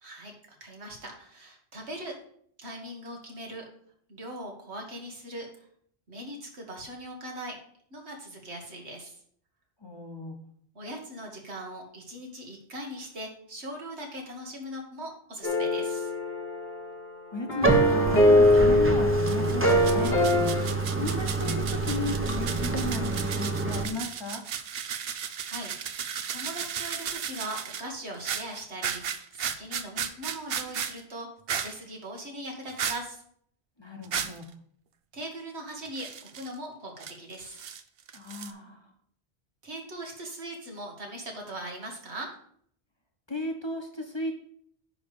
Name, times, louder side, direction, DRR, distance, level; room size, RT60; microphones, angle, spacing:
voice 1, 0.0-0.3 0.6-2.2 2.6-3.7 4.1-5.5 6.1-7.6 7.9-9.2 10.7-16.1 20.5-20.8 25.2-29.0 29.3-33.2 35.1-37.7 39.6-42.3, right 1 dB, 85° right, 1 dB, 2.1 m, -40 dB
voice 2, 9.8-10.4 17.3-20.2 21.0-24.4 33.8-34.5 38.1-38.8 43.3-44.3, left 2 dB, 25° left, 2 dB, 1.1 m, -35 dB
sound 1, 15.4-17.0 17.5-20.6, left 1 dB, 65° left, 2.0 m, -22 dB
Bathtub (filling or washing), 17.6-23.9, right 3 dB, 15° right, 0.8 m, -28 dB
sound 2, 19.2-27.8 28.1-31.0 31.5-31.8 32.7-33.0 34.0-34.4 35.9-36.5 37.0-37.8 38.1-38.5, right 8 dB, 65° right, 0.9 m, -35 dB
9.7 x 3.4 x 6.9 m, 0.63 s
omnidirectional pair, 1.1 m